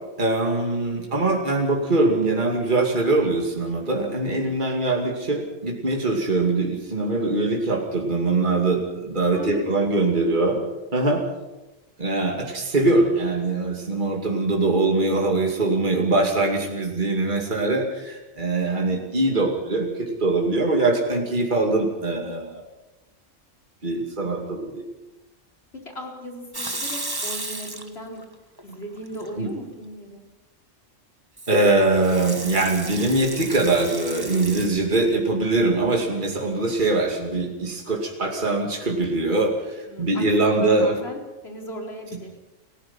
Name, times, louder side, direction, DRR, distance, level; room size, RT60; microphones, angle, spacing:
voice 1, 0.2-10.6 10.9-11.2 12.0-22.6 23.8-24.8 29.4-29.5 31.5-40.9, right 2 dB, 40° right, 0 dB, 2.8 m, -22 dB
voice 2, 9.3-9.7 18.9-19.4 25.9-28.2 28.6-30.2 39.9-42.3, equal, 55° left, 0 dB, 4.6 m, -37 dB
Water tap faucet / Sink (filling or washing) / Liquid, 26.5-28.2 28.6-29.3 31.4-34.7, right 2 dB, 20° right, 1.6 m, -34 dB
29.0 x 16.0 x 5.7 m, 1.0 s
omnidirectional pair, 1.3 m